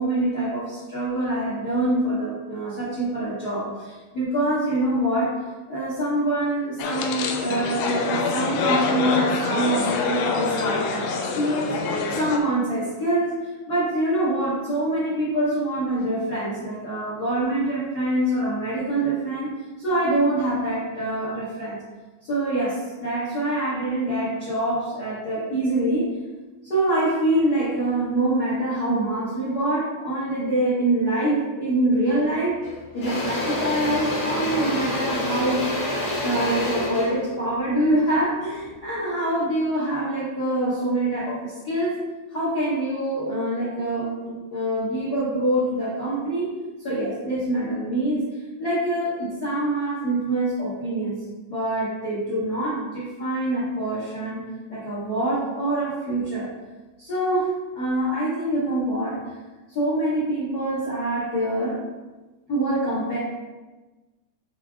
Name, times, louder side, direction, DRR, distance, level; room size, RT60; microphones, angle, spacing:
voice 1, 0.0-5.3 5.7-11.7 12.1-19.5 19.8-21.8 22.2-26.1 26.6-32.6 32.9-35.6 36.2-42.0 42.3-46.5 46.8-48.2 48.6-51.2 51.5-54.4 54.7-56.5 57.0-59.2 59.7-61.8 62.5-63.2, right 1 dB, 45° left, -9 dB, 1.2 m, -25 dB
sound 1, 6.8-12.4, left 4 dB, 80° left, 2.3 m, -25 dB
Engine / Drill, 32.1-32.3 32.6-38.8, left 1 dB, 30° left, 1.8 m, -28 dB
8.3 x 4.2 x 3.7 m, 1.2 s
omnidirectional pair, 4.9 m